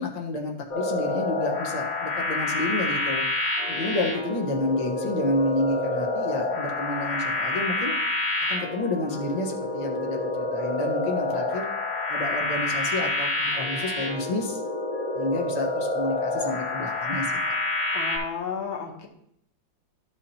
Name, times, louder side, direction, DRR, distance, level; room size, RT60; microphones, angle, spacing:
voice 1, 0.0-3.2 3.7-7.9 8.5-11.7 12.1-14.6 15.1-17.5, left 2 dB, 25° left, 0 dB, 0.9 m, -30 dB
sound 1, 0.7-18.2, left 2 dB, 45° left, 1.7 m, -28 dB
voice 2, 17.9-19.1, left 6 dB, 85° left, 2 dB, 2.0 m, -32 dB
12.5 x 4.9 x 2.9 m, 0.73 s
omnidirectional pair, 2.2 m